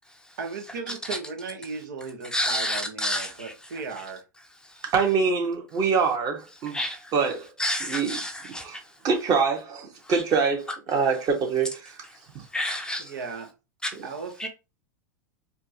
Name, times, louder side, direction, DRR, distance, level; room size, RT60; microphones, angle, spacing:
voice 1, 0.4-4.2 13.0-13.5 14.0-14.5, right 4 dB, 75° right, 1.3 m, -36 dB
voice 2, 2.3-3.5 4.7-4.8 6.7-7.1 7.6-8.8 10.0-10.2 12.5-13.1 13.8-14.0 14.4-14.5, left 1 dB, 10° left, 0.6 m, -30 dB
voice 3, 4.8-6.8 7.1-7.5 7.9-8.2 8.6-8.8 9.0-12.0, right 5 dB, 40° right, 1.7 m, -24 dB
4.4 x 2.8 x 3.0 m
hypercardioid pair, 110°, 10 cm